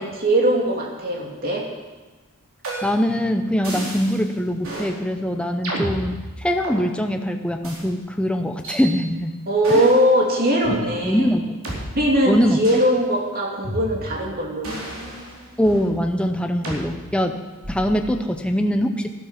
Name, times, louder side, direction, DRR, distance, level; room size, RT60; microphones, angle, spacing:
voice 1, 0.0-1.6 9.5-11.3 12.0-14.7, equal, 45° right, -1 dB, 2.8 m, -20 dB
sound 1, 2.6-3.1 3.6-4.2 4.6-4.9 5.6-6.8 7.6-7.8 8.6-8.8 9.6-10.1 10.6-10.8 11.6-11.8 12.6-12.9 13.6-14.2 14.6-15.9 16.6-16.8 17.6-18.0, right 1 dB, 65° right, 4.5 m, -32 dB
voice 2, 2.8-9.3 9.7-9.8 11.0-11.6 12.3-12.6 15.6-17.4 17.7-19.1, equal, 5° left, 5 dB, 0.7 m, -22 dB
13.0 x 12.5 x 5.8 m, 1.2 s
head